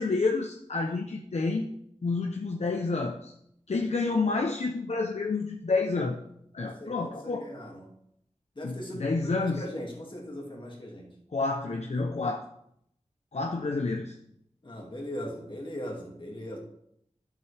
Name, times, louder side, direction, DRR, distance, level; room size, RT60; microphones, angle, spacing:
voice 1, 0.0-1.7 2.0-3.3 3.7-6.2 6.5-7.5 8.6-9.6 11.3-12.4 13.3-14.1, left 3 dB, 65° left, 2 dB, 0.8 m, -29 dB
voice 2, 6.6-7.9 8.6-11.1 14.6-16.6, equal, 45° left, -1 dB, 2.2 m, -39 dB
11.5 x 7.4 x 3.4 m, 0.74 s
wide cardioid pair, 75°, 12 cm